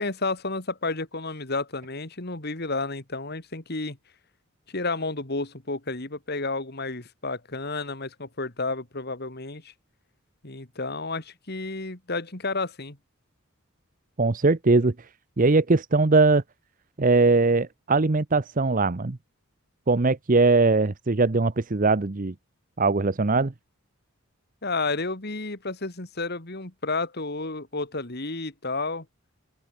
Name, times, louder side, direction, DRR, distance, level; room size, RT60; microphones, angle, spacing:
voice 1, 0.0-4.0 4.7-9.7 10.4-13.0 24.6-29.1, left 3 dB, 50° left, 2.5 m, -31 dB
voice 2, 14.2-14.9 15.4-16.4 17.0-19.2 19.9-22.3 22.8-23.5, right 3 dB, 40° right, 0.8 m, -21 dB
open air
head